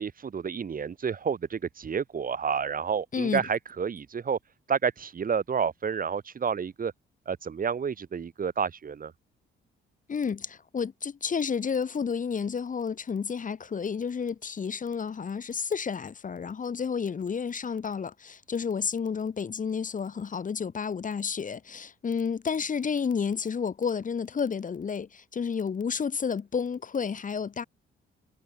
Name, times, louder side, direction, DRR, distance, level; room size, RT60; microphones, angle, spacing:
voice 1, 0.0-4.4 4.7-6.9 7.3-9.1, right 6 dB, 45° right, 4.9 m, -30 dB
voice 2, 3.1-3.4 10.1-27.6, left 6 dB, 40° left, 2.6 m, -31 dB
cardioid pair, 90°, 20 cm